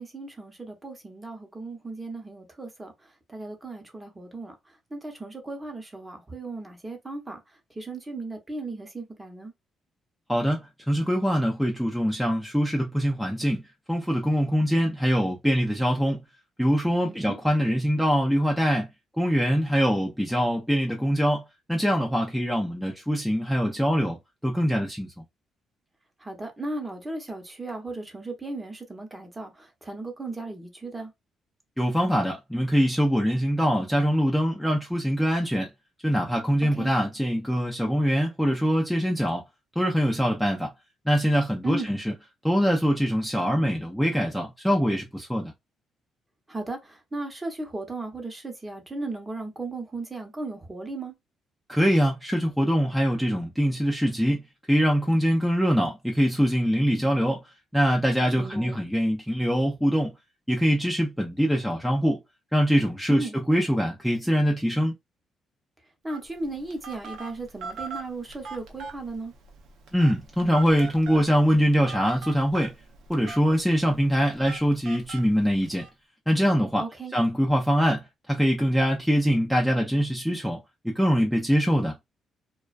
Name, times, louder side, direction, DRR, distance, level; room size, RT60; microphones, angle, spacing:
voice 1, 0.0-2.9 3.3-4.5 4.9-7.4 7.7-9.5 17.0-17.4 26.2-31.1 36.6-36.9 41.6-41.9 46.5-51.1 58.4-58.8 63.1-63.3 66.0-69.3 76.8-77.1, right 2 dB, 20° right, 0.8 m, -36 dB
voice 2, 10.3-13.6 13.9-16.2 16.6-18.9 19.2-21.4 21.7-24.2 24.4-25.1 31.8-35.7 36.0-39.4 39.8-40.7 41.1-42.1 42.4-45.5 51.7-54.4 54.7-57.4 57.7-60.1 60.5-62.2 62.5-64.9 69.9-72.7 73.1-75.8 76.3-76.8 77.1-80.6 80.8-82.0, equal, ahead, 0.5 m, -23 dB
Telephone, 66.1-75.9, right 4 dB, 80° right, 0.6 m, -42 dB
2.3 x 2.2 x 2.4 m
cardioid pair, 90°, 0 cm